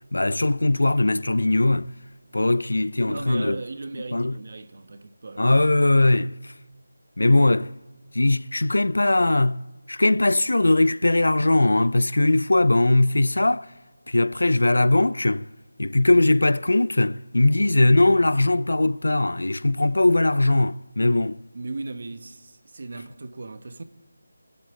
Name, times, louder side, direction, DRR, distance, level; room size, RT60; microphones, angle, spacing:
voice 1, 0.1-1.9 2.3-3.6 4.1-4.3 5.4-6.5 7.2-7.7 8.1-9.6 9.9-13.7 14.1-15.5 15.8-21.4, left 2 dB, 90° left, 0.5 m, -20 dB
voice 2, 3.1-5.7 21.5-23.8, right 3 dB, 45° right, 1.1 m, -37 dB
25.0 x 12.5 x 8.2 m
figure-of-eight pair, 175°, 0 cm